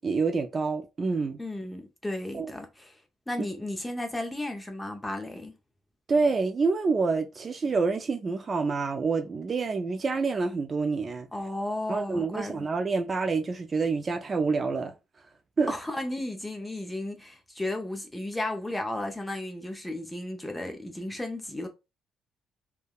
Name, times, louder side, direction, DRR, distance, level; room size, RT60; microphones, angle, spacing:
voice 1, 0.0-1.4 2.3-2.5 6.1-11.3 11.9-14.9 15.6-15.7, right 4 dB, 30° right, 0.3 m, -27 dB
voice 2, 1.4-3.0 3.3-5.5 11.3-12.7 15.7-21.7, left 1 dB, 10° left, 0.6 m, -34 dB
3.3 x 2.2 x 2.2 m
cardioid pair, 125°, 0 cm